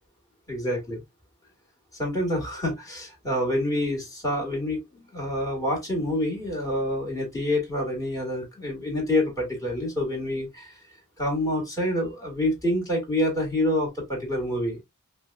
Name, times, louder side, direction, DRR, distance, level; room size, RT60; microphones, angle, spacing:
voice 1, 0.5-1.0 1.9-10.8 11.2-14.8, left 1 dB, 15° left, 1.7 m, -27 dB
5.0 x 2.2 x 2.4 m
head